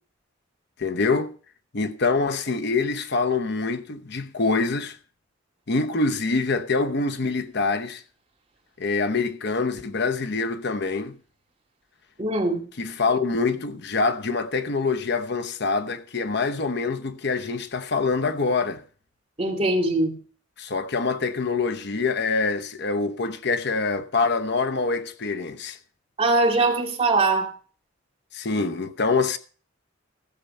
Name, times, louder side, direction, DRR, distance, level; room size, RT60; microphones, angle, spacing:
voice 1, 0.8-1.3 1.7-5.0 5.7-8.0 8.8-11.1 12.8-18.8 20.6-25.8 28.3-29.4, left 4 dB, 55° left, 0.9 m, -25 dB
voice 2, 12.2-12.6 19.4-20.2 26.2-27.5, right 2 dB, 30° right, 2.4 m, -22 dB
15.0 x 6.7 x 5.5 m
head